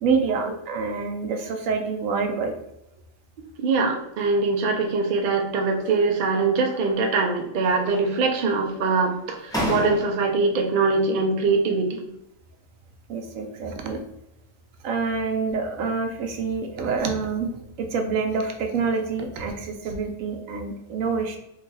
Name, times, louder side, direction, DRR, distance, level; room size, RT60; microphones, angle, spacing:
voice 1, 0.0-2.5 13.1-14.0 14.8-17.5 17.8-21.4, right 5 dB, 75° right, 4 dB, 1.0 m, -27 dB
voice 2, 3.6-12.1, right 4 dB, 60° right, 2 dB, 0.5 m, -23 dB
sound 1, 5.6-6.2 6.6-7.4 7.7-8.4 9.1-9.2 9.5-10.5, equal, 5° left, 0.4 m, -33 dB
2.7 x 2.3 x 3.8 m, 0.82 s
omnidirectional pair, 1.4 m